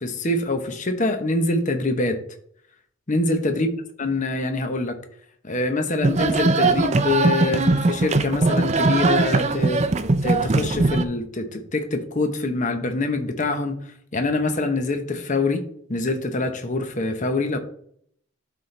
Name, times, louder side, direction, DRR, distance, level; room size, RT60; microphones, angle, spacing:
voice 1, 0.0-2.2 3.1-5.0 5.4-9.8 10.2-13.8 14.1-15.6 15.9-17.6, left 2 dB, 40° left, 6 dB, 0.9 m, -24 dB
sound 1, 6.0-11.0, right 3 dB, 35° right, 0.5 m, -20 dB
12.0 x 4.2 x 3.3 m, 0.64 s
head